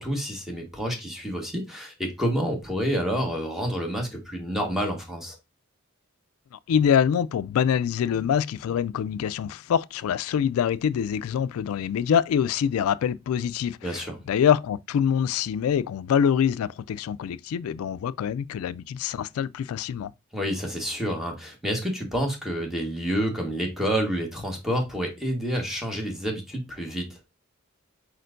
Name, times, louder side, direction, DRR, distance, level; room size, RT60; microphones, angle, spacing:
voice 1, 0.0-5.4 13.8-14.2 20.3-27.1, equal, ahead, 1.3 m, -28 dB
voice 2, 6.5-20.1, left 8 dB, 75° left, 0.3 m, -25 dB
4.5 x 4.3 x 2.5 m
head